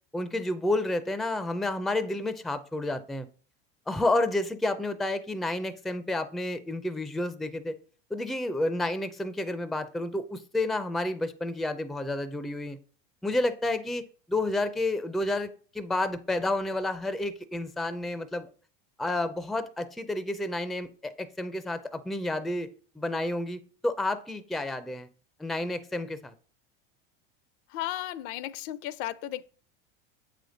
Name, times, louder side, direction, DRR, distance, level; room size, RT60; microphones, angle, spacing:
voice 1, 0.1-3.3 3.9-7.7 8.1-12.8 13.2-18.5 19.0-22.7 23.0-25.1 25.4-26.3, left 2 dB, ahead, 0.4 m, -30 dB
voice 2, 27.7-29.4, left 13 dB, 60° left, 0.5 m, -34 dB
7.5 x 5.1 x 3.9 m
supercardioid pair, 115°, 30 cm